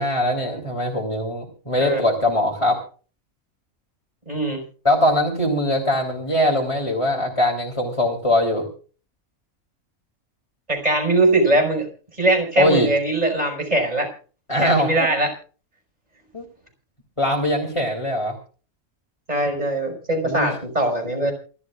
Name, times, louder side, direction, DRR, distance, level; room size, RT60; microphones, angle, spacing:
voice 1, 0.0-2.8 4.8-8.7 12.6-12.9 14.5-15.1 16.3-16.4 17.2-18.3 20.2-20.5, left 1 dB, 20° left, -1 dB, 3.3 m, -21 dB
voice 2, 4.3-4.6 10.7-11.9 12.1-14.1 14.6-15.3 19.3-21.3, right 2 dB, 25° right, 4 dB, 5.7 m, -21 dB
27.5 x 13.0 x 2.5 m, 0.38 s
omnidirectional pair, 1.5 m